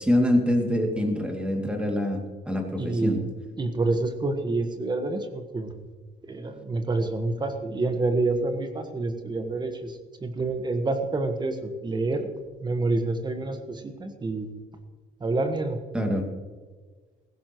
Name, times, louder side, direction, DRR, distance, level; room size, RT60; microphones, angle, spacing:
voice 1, 0.0-3.2 15.9-16.3, left 1 dB, 5° right, 2 dB, 2.5 m, -25 dB
voice 2, 2.8-3.3 3.6-5.7 6.2-12.2 12.6-14.5 15.2-15.8, right 2 dB, 25° right, 7 dB, 1.4 m, -28 dB
16.5 x 16.0 x 3.1 m, 1.4 s
cardioid pair, 110°, 17 cm